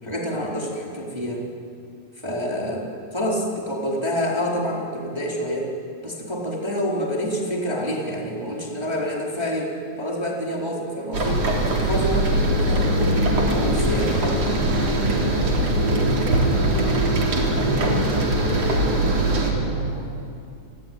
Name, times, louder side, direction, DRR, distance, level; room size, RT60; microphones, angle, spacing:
voice 1, 0.0-1.4 2.2-5.7 6.0-9.7 10.0-14.7, equal, 5° right, -3 dB, 3.8 m, -27 dB
sound 1, 11.1-19.5, right 1 dB, 45° right, 4.4 m, -21 dB
voice 2, 16.3-16.8 17.2-17.8 19.0-20.1, equal, 75° left, 2 dB, 6.6 m, -36 dB
29.5 x 21.5 x 9.4 m, 2.5 s
omnidirectional pair, 4.3 m